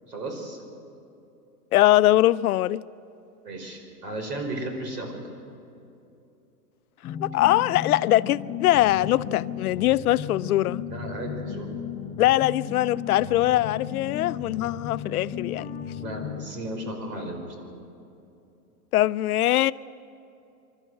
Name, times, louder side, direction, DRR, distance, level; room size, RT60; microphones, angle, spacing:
voice 1, 0.1-0.6 3.4-5.2 10.9-11.7 16.0-17.7, right 1 dB, 85° right, 5.2 m, -34 dB
voice 2, 1.7-2.8 7.2-10.8 12.2-15.7 18.9-19.7, left 15 dB, 70° left, 0.6 m, -22 dB
sound 1, 7.0-16.5, left 8 dB, 15° left, 0.6 m, -35 dB
28.5 x 12.5 x 7.8 m
hypercardioid pair, 135°, 47 cm